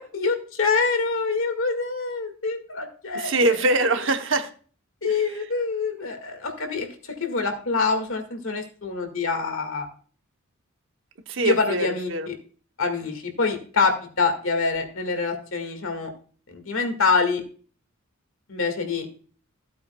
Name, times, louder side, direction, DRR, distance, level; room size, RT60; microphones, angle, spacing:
voice 1, 0.0-3.3 5.0-9.9 11.4-12.3 12.8-16.1 16.5-17.4 18.5-19.1, left 4 dB, 65° left, 1.9 m, -25 dB
voice 2, 3.1-4.5 11.3-12.3, right 2 dB, 55° right, 0.9 m, -23 dB
15.0 x 8.4 x 2.3 m
head